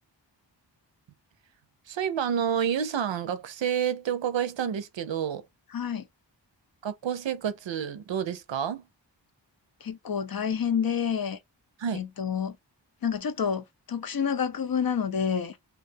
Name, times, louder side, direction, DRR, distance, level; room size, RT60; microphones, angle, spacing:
voice 1, 1.9-5.4 6.8-8.8 11.8-12.0, right 8 dB, 80° right, 0.5 m, -29 dB
voice 2, 5.7-6.0 9.8-11.4 11.9-12.6 13.0-15.6, left 7 dB, 55° left, 0.5 m, -28 dB
2.3 x 2.3 x 2.5 m
wide cardioid pair, 50°, 44 cm